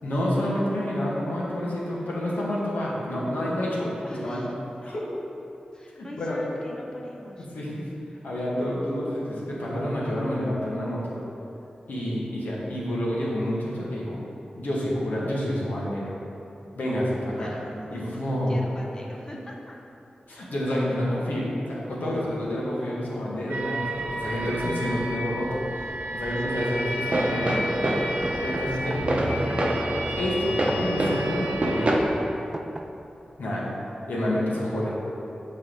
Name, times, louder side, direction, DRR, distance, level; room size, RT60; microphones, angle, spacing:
voice 1, 0.0-4.4 4.8-5.0 5.9-6.4 7.5-7.8 8.2-11.1 11.9-14.2 14.5-16.1 16.8-17.5 17.9-18.6 20.3-27.8 28.4-29.7 30.2-32.1 33.4-33.7 34.1-34.9, equal, 85° left, -6 dB, 1.3 m, -28 dB
voice 2, 4.0-4.5 4.8-5.2 5.7-7.9 11.9-12.1 17.4-19.8 22.1-22.2 26.2-29.2 33.6-33.8, left 1 dB, 25° left, -2 dB, 0.7 m, -44 dB
sound 1, 23.5-32.0, right 1 dB, 90° right, 0.6 m, -32 dB
sound 2, 27.0-32.0, right 1 dB, 45° right, 0.7 m, -27 dB
sound 3, 28.3-33.3, right 1 dB, 20° right, 0.3 m, -40 dB
6.7 x 4.1 x 3.8 m, 2.9 s
cardioid pair, 60°, 3 cm